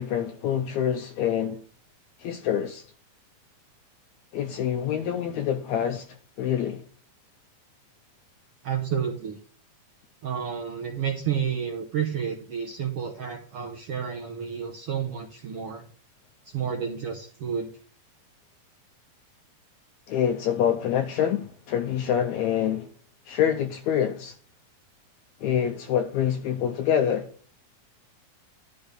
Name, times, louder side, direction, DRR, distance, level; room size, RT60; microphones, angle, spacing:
voice 1, 0.0-1.6 2.2-2.8 4.3-6.1 6.4-6.8 20.1-22.9 23.3-24.3 25.4-27.3, left 9 dB, 80° left, 1.7 m, -26 dB
voice 2, 8.6-9.4 10.2-15.8 16.5-17.7, right 7 dB, 70° right, 1.4 m, -30 dB
12.0 x 4.2 x 6.6 m
omnidirectional pair, 3.9 m